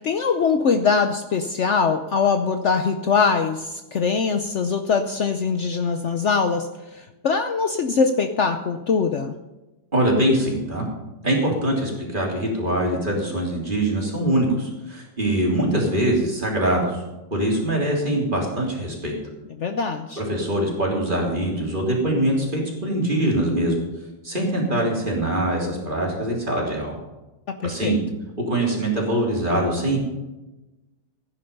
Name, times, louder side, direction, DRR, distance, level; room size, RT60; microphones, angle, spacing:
voice 1, 0.0-9.4 19.6-20.2 27.6-28.0, left 5 dB, 80° left, 7 dB, 0.6 m, -22 dB
voice 2, 9.9-10.8 11.2-17.0 17.3-19.1 20.2-23.8 24.2-27.0 27.6-28.0 28.5-30.0, right 1 dB, 25° right, -2 dB, 3.5 m, -23 dB
15.5 x 10.0 x 5.4 m, 1.0 s
omnidirectional pair, 2.3 m